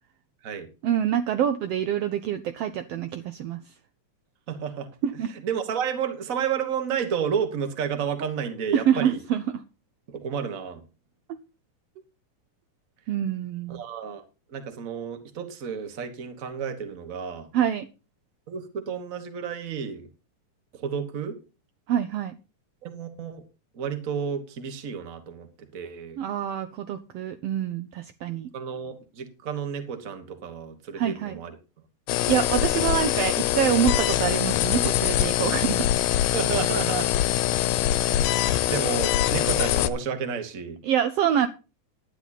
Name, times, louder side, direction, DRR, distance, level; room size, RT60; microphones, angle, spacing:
voice 1, 0.8-3.6 5.0-5.3 8.7-9.6 13.1-13.8 17.5-17.9 21.9-22.4 26.2-28.5 31.0-31.4 32.3-36.1 40.8-41.5, right 9 dB, 85° right, 1.3 m, -26 dB
voice 2, 4.5-4.9 5.4-9.2 10.1-10.8 13.7-14.2 14.5-17.5 18.5-20.1 20.7-21.4 22.8-23.4 23.7-26.2 28.5-31.5 36.3-37.1 38.1-38.3 38.7-40.8, right 7 dB, 45° right, 1.1 m, -31 dB
sound 1, 32.1-39.9, left 13 dB, 85° left, 2.3 m, -23 dB
11.5 x 10.0 x 4.1 m
omnidirectional pair, 3.7 m